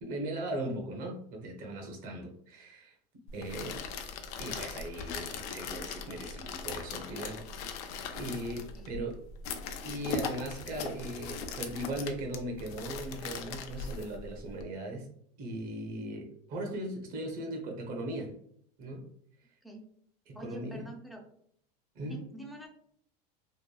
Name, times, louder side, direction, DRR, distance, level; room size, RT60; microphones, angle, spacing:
voice 1, 0.0-3.0 3.3-3.8 4.4-9.2 9.8-15.1 15.4-18.4 18.8-19.0 20.3-20.9 21.9-22.2, right 1 dB, 40° right, 2 dB, 0.7 m, -38 dB
sound 1, 3.3-14.6, left 5 dB, 65° left, 0.5 m, -39 dB
voice 2, 20.3-21.2 22.0-22.7, right 1 dB, ahead, 1 dB, 0.3 m, -46 dB
2.9 x 2.2 x 2.2 m, 0.66 s
supercardioid pair, 140°, 21 cm